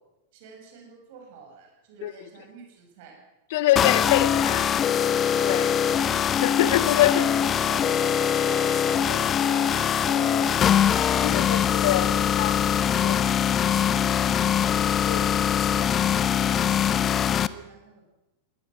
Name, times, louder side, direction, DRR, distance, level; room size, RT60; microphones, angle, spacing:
voice 1, 0.3-3.2 3.7-4.2 6.7-7.4 7.7-11.7 12.1-12.3 12.8-14.4 14.9-18.0, right 5 dB, 50° right, 6.9 m, -45 dB
voice 2, 3.5-4.8 5.4-7.3 11.2-12.6 13.0-13.2 15.0-15.3, left 14 dB, 55° left, 0.9 m, -25 dB
sound 1, 3.8-17.5, left 9 dB, 25° left, 0.7 m, -22 dB
20.5 x 19.5 x 6.4 m
figure-of-eight pair, 90°, 0 cm